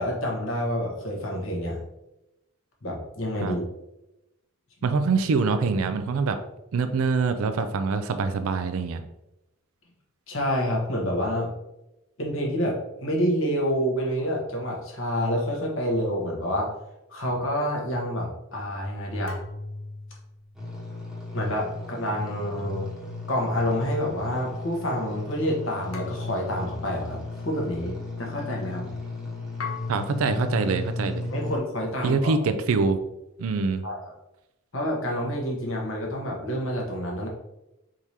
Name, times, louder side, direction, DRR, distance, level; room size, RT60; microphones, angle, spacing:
voice 1, 0.0-1.8 2.8-3.6 10.3-11.5 12.2-16.7 17.1-19.4 21.3-22.9 23.3-27.2 27.4-28.9 31.3-32.3 33.8-34.0 34.7-37.3, equal, 65° left, -1 dB, 1.2 m, -28 dB
voice 2, 4.8-6.4 6.7-9.0 29.9-31.3 32.0-33.0 33.4-33.9, right 4 dB, 80° right, 8 dB, 0.4 m, -24 dB
sound 1, 19.3-20.7 22.6-23.6 25.9-26.9 29.6-30.6, left 4 dB, 80° left, 0.7 m, -40 dB
sound 2, 20.5-31.6, left 2 dB, ahead, 1.0 m, -36 dB
4.6 x 3.6 x 2.8 m, 0.92 s
head